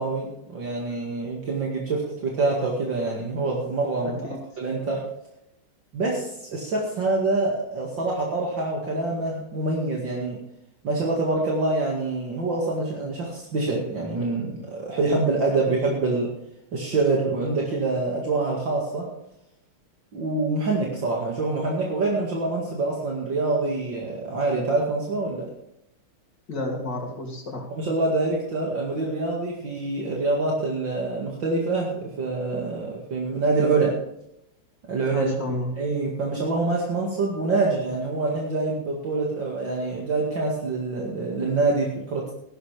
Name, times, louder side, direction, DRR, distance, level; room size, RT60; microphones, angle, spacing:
voice 1, 0.0-4.2 4.6-5.1 5.9-10.4 10.8-16.3 16.7-19.1 20.1-25.5 27.8-34.0 34.9-42.3, right 3 dB, 60° right, -2 dB, 2.8 m, -26 dB
voice 2, 4.0-4.4 26.5-27.7 35.1-35.7, left 1 dB, 55° left, 0 dB, 3.5 m, -31 dB
16.0 x 12.5 x 3.5 m, 0.79 s
omnidirectional pair, 2.3 m